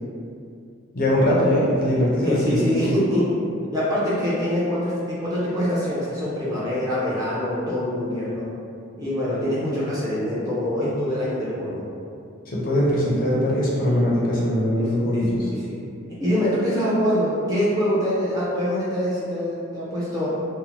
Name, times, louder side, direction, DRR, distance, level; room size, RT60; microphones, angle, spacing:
voice 1, 0.9-2.9 12.5-15.5, equal, 45° left, -5 dB, 0.5 m, -21 dB
voice 2, 2.2-3.3 3.7-8.5 9.0-11.8 14.8-15.7 16.2-20.4, equal, 15° right, -9 dB, 0.5 m, -24 dB
2.7 x 2.0 x 3.0 m, 2.5 s
head